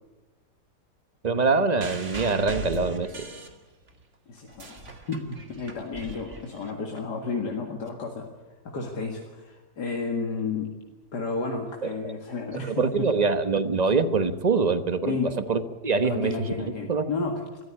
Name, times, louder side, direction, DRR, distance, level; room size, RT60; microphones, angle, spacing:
voice 1, 1.2-3.1 12.0-12.2 12.6-17.1, right 4 dB, 30° right, 11 dB, 1.0 m, -24 dB
sound 1, 1.8-4.0 4.4-7.0 7.9-8.0, right 3 dB, 45° right, 2.4 m, -40 dB
voice 2, 4.3-8.3 8.6-10.7 11.1-13.1 15.1-15.3 16.0-17.5, left 4 dB, 75° left, 1 dB, 2.5 m, -32 dB
24.0 x 14.0 x 9.9 m, 1.2 s
omnidirectional pair, 1.8 m